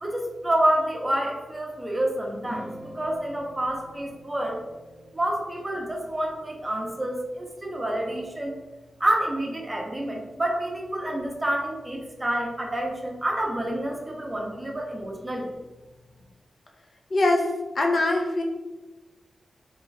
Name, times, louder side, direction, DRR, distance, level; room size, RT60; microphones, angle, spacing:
voice 1, 0.0-4.6 5.1-8.5 9.0-15.5, right 1 dB, 20° right, 0 dB, 0.7 m, -28 dB
sound 1, 2.4-7.3, equal, 90° left, 1.4 m, -46 dB
voice 2, 17.1-18.4, left 2 dB, 50° left, 1 dB, 0.5 m, -23 dB
3.3 x 2.5 x 3.9 m, 1.2 s
wide cardioid pair, 105°, 0 cm